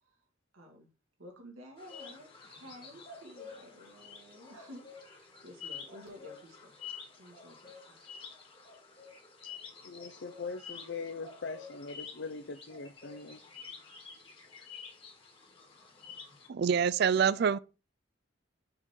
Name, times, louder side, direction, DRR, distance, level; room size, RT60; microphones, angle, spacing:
voice 1, 0.5-0.9 1.2-6.7 7.2-8.1, left 1 dB, 85° right, 2.0 m, -52 dB
sound 1, 1.8-16.5, left 6 dB, 25° left, 1.4 m, -49 dB
voice 2, 9.8-13.4, left 4 dB, 60° left, 0.6 m, -41 dB
voice 3, 16.5-17.6, right 7 dB, 55° right, 0.3 m, -26 dB
6.7 x 3.7 x 4.4 m
head